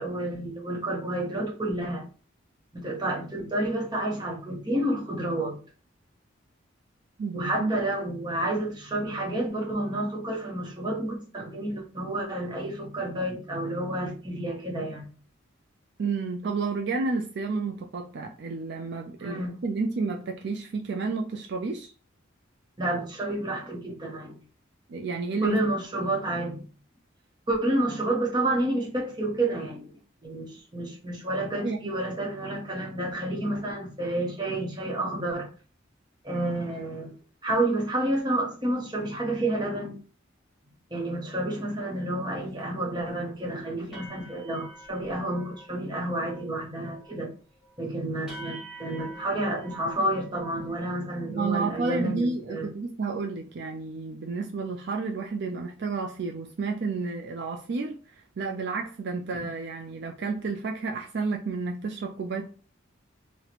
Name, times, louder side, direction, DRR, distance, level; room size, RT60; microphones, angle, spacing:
voice 1, 0.0-2.0 2.7-5.6 7.3-15.0 19.2-19.6 22.8-24.3 25.4-26.6 27.5-35.5 36.2-37.1 37.4-40.0 40.9-47.3 47.8-52.7, right 1 dB, 20° right, 0.8 m, -30 dB
voice 2, 7.2-7.7 16.0-21.9 24.9-25.6 31.6-31.9 51.3-58.0 58.4-62.4, right 4 dB, 55° right, 0.4 m, -31 dB
sound 1, 42.4-42.5 42.9-43.1 43.4-43.5 43.9-45.7 46.0-46.5 46.7-47.2 47.6-47.7 48.3-50.8, right 2 dB, 5° right, 1.1 m, -46 dB
2.9 x 2.1 x 4.0 m
head